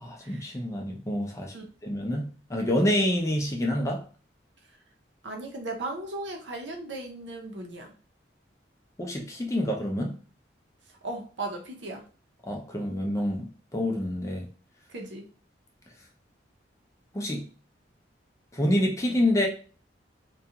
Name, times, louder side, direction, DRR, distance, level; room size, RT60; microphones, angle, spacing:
voice 1, 0.0-1.5 1.8-4.0 9.0-10.2 12.4-14.5 17.1-17.5 18.5-19.5, left 1 dB, 15° left, 1 dB, 0.4 m, -27 dB
voice 2, 5.2-7.9 11.0-12.0 14.9-15.3, right 2 dB, 80° right, 2 dB, 0.7 m, -36 dB
2.4 x 2.3 x 2.8 m, 0.39 s
head